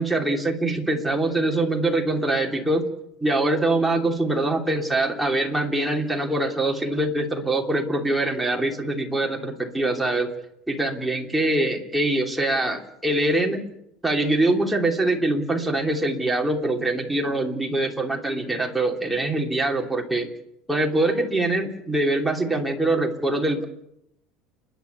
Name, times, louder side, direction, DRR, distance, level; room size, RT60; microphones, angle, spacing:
voice 1, 0.0-2.9 3.2-10.3 10.7-13.6 14.0-20.3 20.7-23.6, right 2 dB, 5° right, 0 dB, 3.1 m, -23 dB
30.0 x 10.5 x 9.4 m, 0.80 s
cardioid pair, 145°, 0 cm